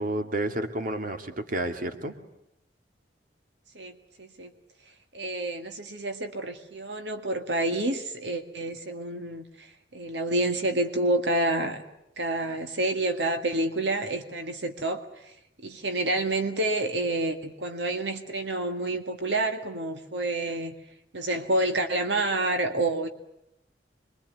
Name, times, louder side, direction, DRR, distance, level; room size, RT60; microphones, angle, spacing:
voice 1, 0.0-2.1, right 1 dB, 50° right, 7 dB, 2.2 m, -30 dB
voice 2, 3.8-4.5 5.1-9.7 9.9-11.8 12.2-15.0 15.6-20.7 21.1-23.1, right 2 dB, 85° right, 7 dB, 1.9 m, -28 dB
26.5 x 23.0 x 9.5 m, 0.82 s
head